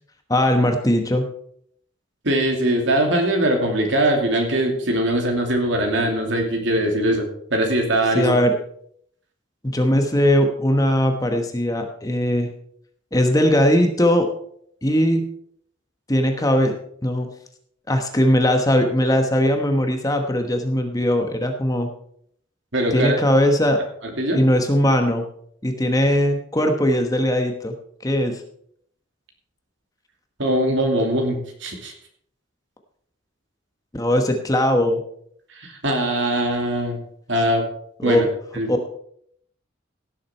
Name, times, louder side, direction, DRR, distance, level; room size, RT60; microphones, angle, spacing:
voice 1, 0.3-1.3 8.1-8.6 9.6-12.5 13.1-14.3 14.8-15.3 16.1-16.7 17.0-17.3 17.9-21.9 22.9-23.8 24.3-25.2 25.6-27.8 28.0-28.4 33.9-35.0 38.0-38.3 38.7-38.9, equal, 15° left, 5 dB, 1.1 m, -19 dB
voice 2, 2.2-7.2 7.5-8.3 22.7-23.2 24.2-24.4 30.4-31.9 35.6-37.0 37.3-37.7 38.0-38.3 38.5-38.7, right 1 dB, 65° right, 2 dB, 2.7 m, -21 dB
16.5 x 7.5 x 4.4 m, 0.66 s
head